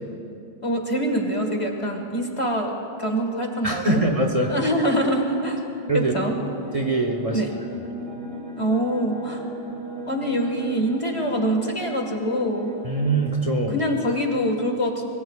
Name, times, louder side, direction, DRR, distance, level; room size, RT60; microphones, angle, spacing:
voice 1, 0.6-2.7 3.0-4.0 4.5-5.6 5.9-6.3 7.3-7.5 8.6-9.4 10.1-12.7 13.7-15.0, equal, 30° left, 2 dB, 1.6 m, -24 dB
voice 2, 3.6-4.5 5.9-6.1 6.7-7.4 12.8-13.8, right 2 dB, 35° right, 2 dB, 1.1 m, -22 dB
sound 1, 5.1-14.2, equal, 75° right, 2.1 m, -37 dB
24.5 x 21.5 x 2.4 m, 2.6 s
omnidirectional pair, 1.0 m